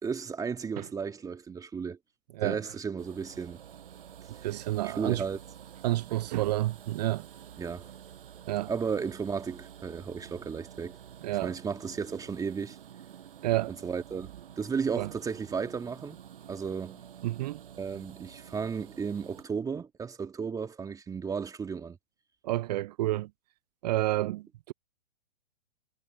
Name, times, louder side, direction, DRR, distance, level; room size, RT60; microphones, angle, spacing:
voice 1, 0.0-2.0 2.4-3.6 4.8-5.4 7.6-7.9 8.7-11.0 11.4-12.8 13.8-14.3 14.6-16.2 16.5-17.0 17.8-22.0, right 6 dB, 10° right, 1.8 m, -34 dB
sound 1, 3.0-19.4, right 9 dB, 65° right, 6.3 m, -49 dB
voice 2, 4.4-5.2 5.8-7.3 8.5-8.7 11.2-11.5 13.4-13.8 15.0-15.1 17.2-17.6 22.4-23.3 23.8-24.7, right 16 dB, 45° right, 0.7 m, -29 dB
hypercardioid pair, 120°, 30 cm